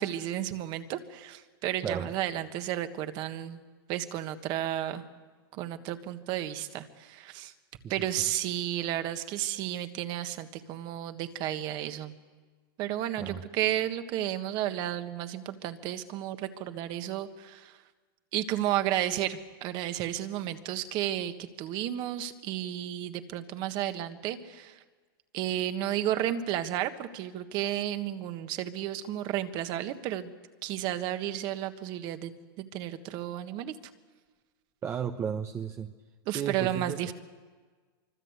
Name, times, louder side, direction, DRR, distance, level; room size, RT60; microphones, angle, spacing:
voice 1, 0.0-3.6 3.9-5.0 5.5-7.5 7.9-12.1 12.8-17.8 18.3-24.8 25.3-30.3 30.6-33.7 36.3-37.1, right 12 dB, 35° right, 9 dB, 1.6 m, -32 dB
voice 2, 1.8-2.1 7.8-8.1 13.2-13.4 34.8-35.9 36.3-37.0, right 8 dB, 20° right, 6 dB, 0.9 m, -34 dB
25.0 x 24.5 x 8.2 m, 1.4 s
supercardioid pair, 150°, 12 cm